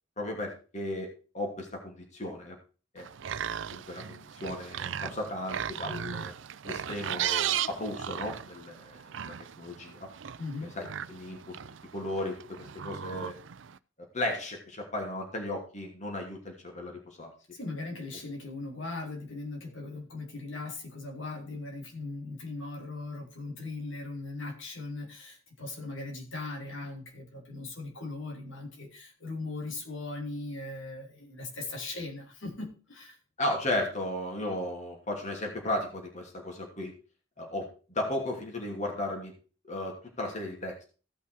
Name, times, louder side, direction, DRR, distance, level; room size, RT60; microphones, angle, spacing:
voice 1, 0.2-2.6 2.9-3.1 3.7-6.3 6.6-10.1 10.6-11.6 11.9-13.3 14.1-17.3 33.4-36.9 37.4-39.3 39.7-40.9, left 1 dB, 40° left, 1 dB, 2.7 m, -35 dB
sound 1, 3.0-13.8, right 9 dB, 70° right, 0.5 m, -36 dB
voice 2, 10.4-10.8 17.5-33.2, left 3 dB, 80° left, 2 dB, 3.0 m, -39 dB
15.5 x 5.9 x 4.7 m, 0.36 s
head